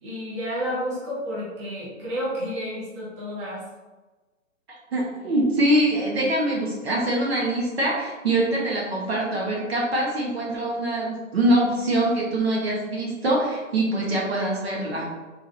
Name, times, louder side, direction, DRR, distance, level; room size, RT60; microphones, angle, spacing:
voice 1, 0.0-3.6, equal, 20° right, -7 dB, 1.0 m, -31 dB
voice 2, 4.9-15.1, right 1 dB, 50° right, -3 dB, 1.0 m, -24 dB
4.6 x 3.3 x 2.5 m, 1.2 s
hypercardioid pair, 160°, 41 cm